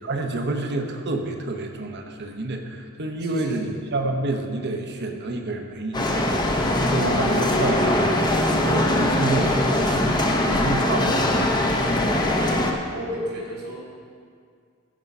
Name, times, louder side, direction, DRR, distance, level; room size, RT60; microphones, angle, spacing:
voice 1, 0.0-7.9 8.1-11.6, right 2 dB, 50° right, 4 dB, 1.0 m, -29 dB
voice 2, 3.2-3.7 7.4-7.5 12.3-12.5 12.9-13.8, equal, 90° right, -4 dB, 3.2 m, -34 dB
sound 1, 5.9-12.7, left 1 dB, 20° left, 0.8 m, -21 dB
15.5 x 5.3 x 5.4 m, 2.1 s
head